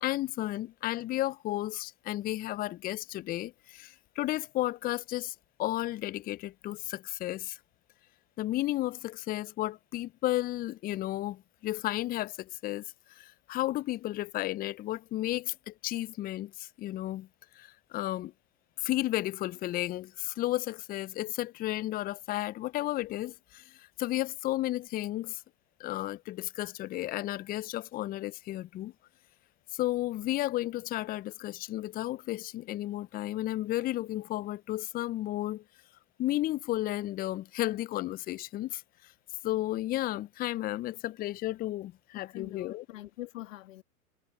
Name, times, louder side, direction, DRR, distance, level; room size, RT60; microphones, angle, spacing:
voice 1, 0.0-7.6 8.4-17.3 17.5-18.3 18.8-25.4 25.8-28.9 29.7-35.6 36.2-38.8 39.4-42.8, left 15 dB, 20° left, 0.7 m, -33 dB
voice 2, 42.2-43.8, left 16 dB, 55° left, 2.1 m, -44 dB
figure-of-eight pair, 100°, 45 cm